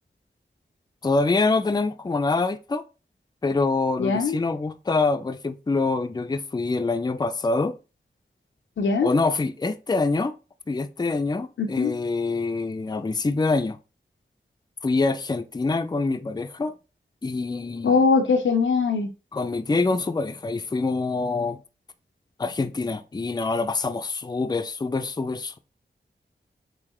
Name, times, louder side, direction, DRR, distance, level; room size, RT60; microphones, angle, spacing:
voice 1, 1.0-2.8 3.4-7.7 9.0-10.3 10.7-13.8 14.8-16.7 17.2-18.0 19.3-21.6 22.4-25.6, left 3 dB, 20° left, 0.4 m, -25 dB
voice 2, 4.0-4.3 8.8-9.1 11.6-11.9 17.8-19.1, left 4 dB, 85° left, 0.6 m, -21 dB
3.8 x 3.0 x 3.0 m
cardioid pair, 45°, 19 cm